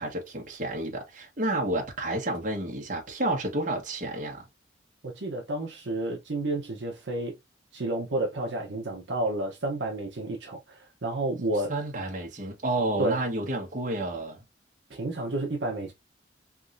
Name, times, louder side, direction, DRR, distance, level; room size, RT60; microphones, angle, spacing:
voice 1, 0.0-4.5 11.7-14.4, right 1 dB, 40° right, 1.2 m, -30 dB
voice 2, 5.0-7.4 7.7-11.7 13.0-13.2 14.9-15.9, right 2 dB, 70° right, 0.8 m, -30 dB
3.5 x 3.1 x 2.6 m
head